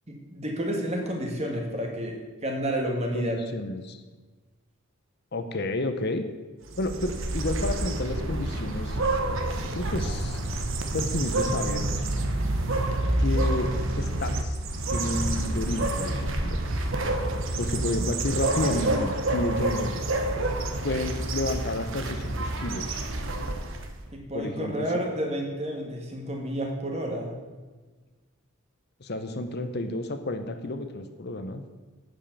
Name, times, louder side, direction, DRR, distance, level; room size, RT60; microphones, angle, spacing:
voice 1, 0.1-2.1 2.4-3.4 24.1-27.4, equal, 30° right, 1 dB, 1.8 m, -30 dB
voice 2, 3.1-4.0 5.3-6.2 6.8-9.0 9.6-10.4 10.9-11.9 13.2-14.6 14.9-16.6 17.6-19.9 20.8-23.0 24.3-24.9 29.0-31.6, left 2 dB, 50° left, 8 dB, 0.8 m, -31 dB
sound 1, 6.7-24.0, right 2 dB, 60° right, 1.1 m, -28 dB
8.8 x 7.4 x 6.7 m, 1.3 s
head